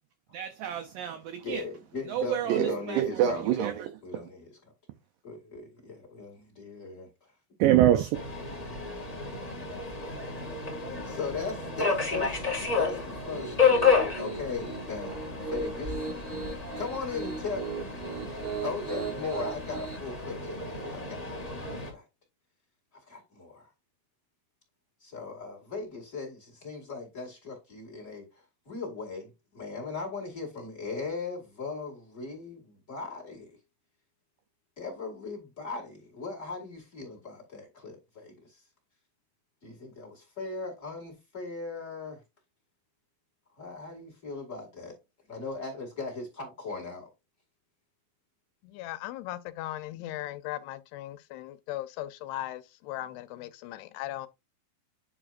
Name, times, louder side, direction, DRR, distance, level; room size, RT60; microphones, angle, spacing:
voice 1, 0.3-1.6 2.1-4.3 7.6-8.2, right 12 dB, 85° right, 1.9 m, -26 dB
voice 2, 1.4-4.6 5.2-7.3 8.6-9.0 10.8-12.5 12.8-15.9 16.7-17.6 18.6-22.1 23.1-23.7 25.0-33.6 34.8-38.6 39.6-42.2 43.6-45.0 45.3-47.1, left 4 dB, 30° left, 1.5 m, -38 dB
Subway metro underground, 8.1-21.9, left 5 dB, 60° left, 0.4 m, -31 dB
Piano, 13.1-20.0, right 5 dB, 70° right, 1.1 m, -38 dB
voice 3, 48.6-54.3, left 14 dB, 85° left, 2.6 m, -38 dB
9.2 x 4.9 x 2.5 m
omnidirectional pair, 4.6 m